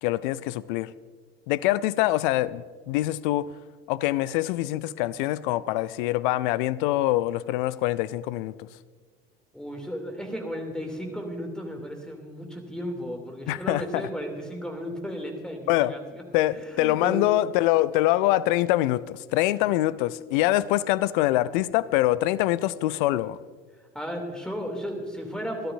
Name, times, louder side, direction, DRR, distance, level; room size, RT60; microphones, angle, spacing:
voice 1, 0.0-0.9 1.5-3.5 3.9-8.7 13.5-14.1 15.7-15.9 16.3-23.4, left 15 dB, 55° left, 18 dB, 0.5 m, -24 dB
voice 2, 9.5-17.2 19.6-19.7 23.9-25.7, equal, ahead, 3 dB, 2.8 m, -34 dB
27.0 x 12.5 x 2.6 m, 1.5 s
figure-of-eight pair, 65°, 31 cm